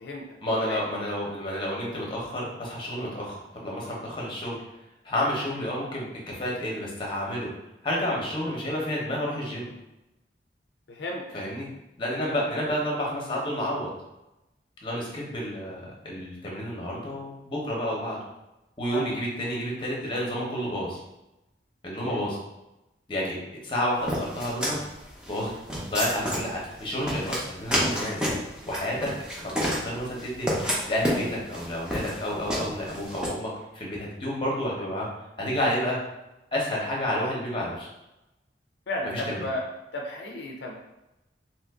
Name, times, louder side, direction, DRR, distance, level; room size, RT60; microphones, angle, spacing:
voice 1, 0.4-4.6 5.0-7.5 7.8-9.7 11.3-11.7 12.0-13.9 14.8-18.2 18.8-21.0 21.8-22.4 23.1-23.4 23.6-24.8 25.3-25.5 25.9-28.3 28.6-29.1 29.4-35.1 35.4-36.0 36.5-37.9 39.1-39.4, equal, 30° left, -3 dB, 0.8 m, -30 dB
voice 2, 10.9-11.4 12.2-12.4 18.9-19.2 38.9-39.6 39.9-40.8, left 1 dB, 70° left, 0 dB, 0.4 m, -34 dB
sound 1, 24.1-33.3, equal, 5° right, 0.5 m, -30 dB
2.8 x 2.5 x 3.4 m, 0.95 s
head